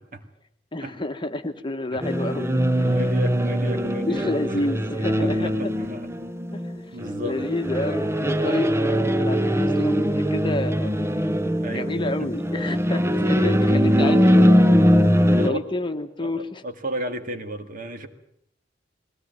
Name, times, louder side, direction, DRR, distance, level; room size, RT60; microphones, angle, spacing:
voice 1, 0.7-3.0 4.0-5.5 6.5-10.9 11.7-14.6 15.4-16.6, left 2 dB, 25° left, 7 dB, 1.2 m, -30 dB
sound 1, 2.0-15.5, equal, 15° right, 0.8 m, -21 dB
voice 2, 2.8-4.7 5.2-6.1 6.9-7.4 8.4-8.6 11.6-12.3 13.2-13.5 15.4-15.6 16.2-18.1, right 1 dB, 45° right, 7 dB, 2.1 m, -33 dB
21.5 x 16.5 x 9.2 m, 0.72 s
head